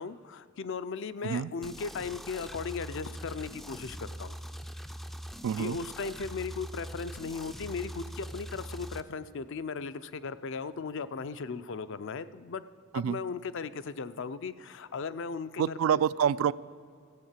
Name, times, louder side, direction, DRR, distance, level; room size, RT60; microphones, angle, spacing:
voice 1, 0.0-4.4 5.6-12.6 12.9-16.0, left 5 dB, 60° left, 13 dB, 0.5 m, -37 dB
sound 1, 1.6-9.0, equal, ahead, 0.4 m, -42 dB
voice 2, 5.4-5.8 12.9-13.2 15.6-16.5, right 8 dB, 75° right, 18 dB, 0.3 m, -27 dB
14.0 x 8.1 x 7.3 m, 2.2 s
head